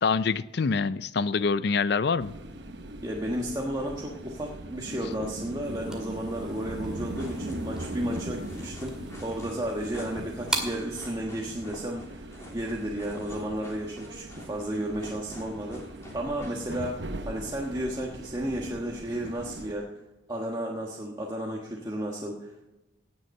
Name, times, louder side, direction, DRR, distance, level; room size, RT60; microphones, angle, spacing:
voice 1, 0.0-2.3, left 5 dB, 55° left, 16 dB, 0.4 m, -25 dB
sound 1, 2.2-19.7, right 1 dB, 60° right, 1.0 m, -40 dB
voice 2, 3.0-15.8 16.1-19.9 20.3-22.6, right 1 dB, 20° right, -2 dB, 1.4 m, -33 dB
sound 2, 5.6-11.0, right 1 dB, 5° right, 2.1 m, -39 dB
sound 3, 7.0-17.0, equal, 15° left, 3.3 m, -47 dB
18.0 x 6.9 x 6.4 m, 1.0 s
head